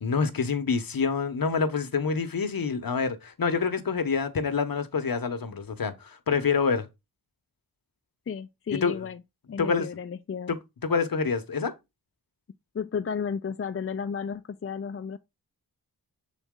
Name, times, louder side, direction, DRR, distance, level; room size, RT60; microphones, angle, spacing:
voice 1, 0.0-6.9 8.7-9.0 9.6-9.9 10.5-10.6 10.8-11.7, left 5 dB, 60° left, 1.0 m, -27 dB
voice 2, 8.3-9.2 9.5-10.6 12.7-15.2, left 6 dB, 35° left, 0.4 m, -33 dB
6.9 x 4.1 x 3.7 m
wide cardioid pair, 65°, 39 cm